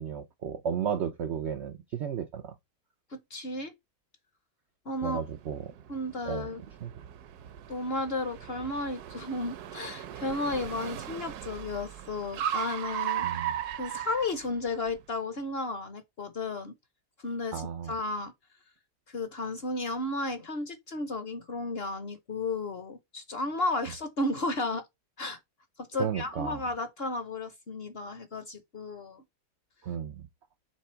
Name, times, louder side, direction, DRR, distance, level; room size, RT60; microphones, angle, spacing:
voice 1, 0.0-2.5 5.0-5.7 6.3-6.5 6.8-6.9 13.2-13.5 17.5-17.9 26.0-26.6 29.8-30.3, right 8 dB, 90° right, 0.5 m, -33 dB
voice 2, 3.1-3.7 4.8-5.2 5.9-6.6 7.7-16.7 17.2-18.3 19.1-24.9 25.2-25.4 25.8-29.2, left 2 dB, 50° left, 0.8 m, -33 dB
Car, 5.1-15.0, right 11 dB, 70° right, 1.1 m, -37 dB
7.5 x 3.3 x 4.4 m
omnidirectional pair, 1.9 m